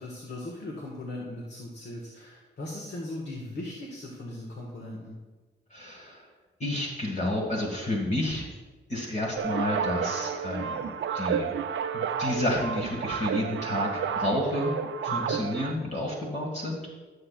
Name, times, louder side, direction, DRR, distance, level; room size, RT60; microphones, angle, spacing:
voice 1, 0.0-5.2 15.1-15.4, left 1 dB, 60° left, -1 dB, 1.7 m, -38 dB
voice 2, 5.7-6.3 6.6-8.5 8.9-11.5 11.9-14.7 15.0-16.9, left 1 dB, 35° left, -2 dB, 1.8 m, -30 dB
sound 1, 9.4-15.7, right 7 dB, 75° right, 0.6 m, -31 dB
14.0 x 7.0 x 2.4 m, 1.3 s
cardioid pair, 70°, 20 cm